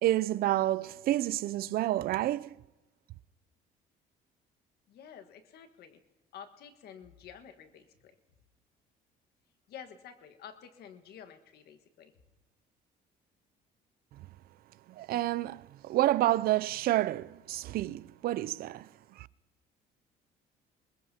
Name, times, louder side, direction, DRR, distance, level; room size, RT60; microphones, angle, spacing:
voice 1, 0.0-2.6 14.9-18.9 19.2-19.3, right 15 dB, 60° right, 0.4 m, -29 dB
voice 2, 4.9-6.0 6.3-8.1 9.7-12.1, left 8 dB, 70° left, 1.5 m, -50 dB
21.0 x 21.0 x 2.8 m
cardioid pair, 110°, 17 cm